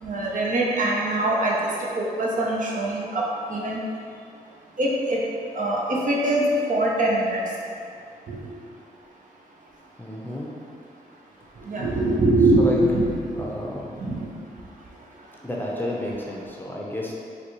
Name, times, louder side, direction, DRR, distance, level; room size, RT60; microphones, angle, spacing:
voice 1, 0.0-1.6 2.0-3.8 4.8-5.2 5.5-7.4 8.3-8.4 11.6-13.1 13.4-13.5 13.9-14.3, right 1 dB, 50° right, -3 dB, 0.7 m, -23 dB
voice 2, 10.0-10.5 12.6-12.8 13.3-13.9 15.4-17.2, left 1 dB, 10° left, -3 dB, 0.6 m, -31 dB
4.0 x 2.3 x 3.0 m, 2.4 s
supercardioid pair, 45°, 17 cm